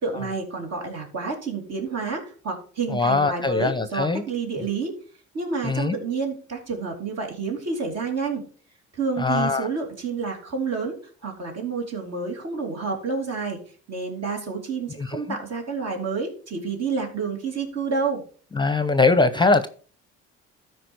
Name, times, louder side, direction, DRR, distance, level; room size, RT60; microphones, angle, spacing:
voice 1, 0.0-4.9 5.3-8.5 8.9-11.0 11.2-13.6 13.9-18.2, right 4 dB, 60° right, 3.0 m, -29 dB
voice 2, 2.9-4.2 5.6-6.0 9.2-9.7 15.0-15.2 18.5-19.7, left 3 dB, 15° left, 0.7 m, -21 dB
12.5 x 4.8 x 4.6 m
cardioid pair, 90°, 30 cm